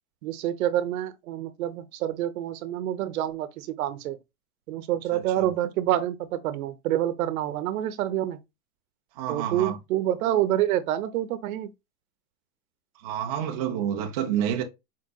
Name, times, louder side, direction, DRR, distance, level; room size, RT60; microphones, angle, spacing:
voice 1, 0.2-4.2 4.7-8.4 9.3-11.7, right 12 dB, 80° right, 0.8 m, -27 dB
voice 2, 5.1-5.5 9.1-9.8 13.0-14.6, right 9 dB, 30° right, 0.4 m, -29 dB
4.6 x 3.7 x 2.2 m
supercardioid pair, 175°, 42 cm